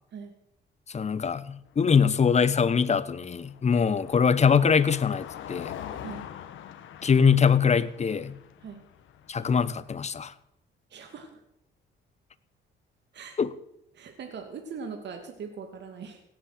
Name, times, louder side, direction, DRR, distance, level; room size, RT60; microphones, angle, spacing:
voice 1, 0.9-5.7 7.0-8.3 9.3-10.3 13.4-13.5, left 6 dB, 35° left, 15 dB, 1.0 m, -23 dB
Car passing by, 1.7-9.9, left 10 dB, 80° left, 1.4 m, -44 dB
voice 2, 10.9-11.4 13.1-13.4 13.9-16.2, right 5 dB, 60° right, 4 dB, 2.4 m, -41 dB
17.0 x 8.9 x 7.6 m, 0.81 s
cardioid pair, 90°, 20 cm